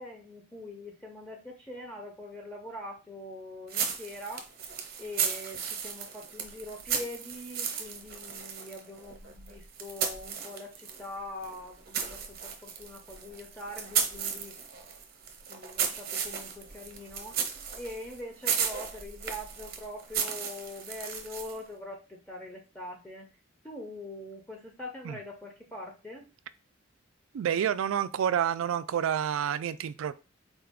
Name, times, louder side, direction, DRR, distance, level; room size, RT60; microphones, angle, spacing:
voice 1, 0.0-4.4 5.0-14.5 15.5-17.3 17.7-23.3 23.6-26.3, left 1 dB, 10° left, 0.6 m, -43 dB
sound 1, 3.7-11.1 11.4-21.7, right 7 dB, 50° right, 0.7 m, -35 dB
voice 2, 27.3-30.1, right 9 dB, 85° right, 0.3 m, -29 dB
4.0 x 2.3 x 3.5 m
head